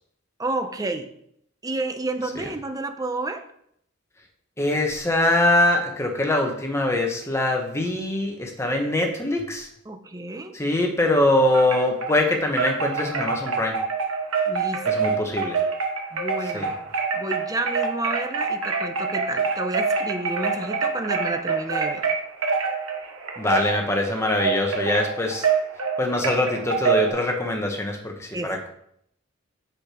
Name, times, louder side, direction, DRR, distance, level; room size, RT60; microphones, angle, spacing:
voice 1, 0.4-1.1 1.6-3.4 9.9-10.5 14.5-15.1 16.1-16.7 17.1-22.0 28.3-28.5, right 2 dB, 15° right, 7 dB, 0.7 m, -30 dB
voice 2, 4.6-9.7 10.5-13.8 14.8-15.6 16.5-16.7 23.4-25.4 26.0-28.7, left 1 dB, 15° left, 2 dB, 1.2 m, -23 dB
Wind chime, 11.5-12.2 12.6-27.1, right 5 dB, 80° right, 1.4 m, -26 dB
6.2 x 5.9 x 4.9 m, 0.71 s
head